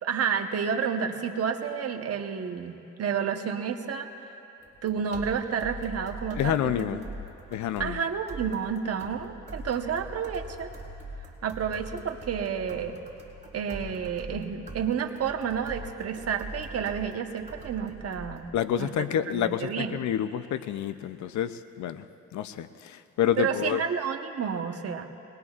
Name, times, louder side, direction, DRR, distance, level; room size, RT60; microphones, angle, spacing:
voice 1, 0.0-4.1 4.8-6.7 7.8-10.7 11.4-13.0 13.5-18.5 18.8-20.0 23.4-25.1, right 7 dB, 55° right, 5 dB, 1.1 m, -30 dB
sound 1, 4.6-18.6, right 1 dB, 25° right, 3.5 m, -43 dB
voice 2, 6.4-7.1 7.5-8.0 18.5-22.1 22.3-23.8, left 10 dB, 70° left, 12 dB, 0.6 m, -28 dB
22.5 x 20.0 x 2.4 m, 2.8 s
cardioid pair, 90°, 30 cm